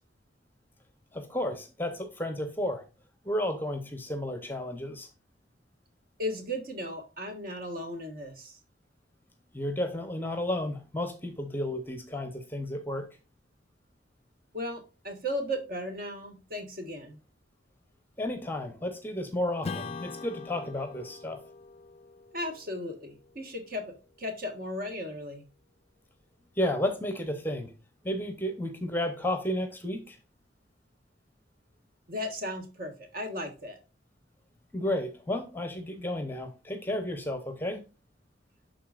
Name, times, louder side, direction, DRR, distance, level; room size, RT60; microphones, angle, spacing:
voice 1, 1.1-2.8 3.2-5.1 9.5-13.1 18.2-21.4 26.6-27.7 28.0-30.2 34.7-37.8, left 1 dB, 10° left, 7 dB, 0.7 m, -32 dB
voice 2, 6.2-8.6 14.5-17.2 22.3-25.5 32.1-33.8, left 1 dB, 50° right, 5 dB, 1.4 m, -36 dB
Strum, 19.6-24.6, left 4 dB, 30° left, 0.3 m, -43 dB
11.0 x 3.9 x 2.4 m, 0.32 s
head